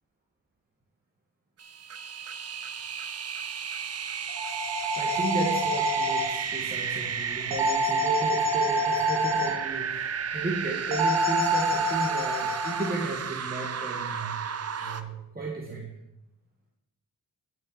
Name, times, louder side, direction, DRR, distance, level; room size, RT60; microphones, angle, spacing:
sound 1, 1.6-15.0, right 7 dB, 40° right, 0.6 m, -34 dB
sound 2, 4.3-6.3 7.5-9.5 10.9-12.9, equal, 70° right, 2.2 m, -26 dB
voice 1, 4.9-14.4 14.8-15.9, right 3 dB, 25° right, -3 dB, 1.7 m, -34 dB
9.3 x 6.6 x 5.6 m, 0.87 s
wide cardioid pair, 120°, 37 cm